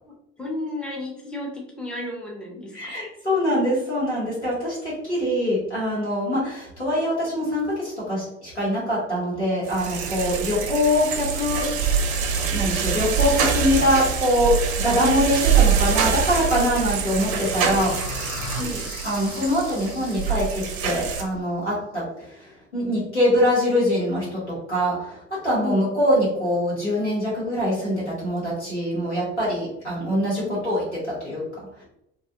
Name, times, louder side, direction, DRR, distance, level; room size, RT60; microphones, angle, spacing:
voice 1, 0.0-2.9 18.6-18.9 25.6-25.9 30.4-30.6, left 2 dB, 5° left, -1 dB, 0.5 m, -33 dB
voice 2, 2.7-17.9 19.0-31.4 31.8-31.9, equal, 90° left, -8 dB, 1.1 m, -24 dB
sound 1, 9.7-21.2, right 7 dB, 45° right, 0.4 m, -24 dB
sound 2, 16.1-21.1, left 3 dB, 60° left, 0.6 m, -39 dB
2.5 x 2.1 x 2.6 m, 0.79 s
figure-of-eight pair, 55°, 33 cm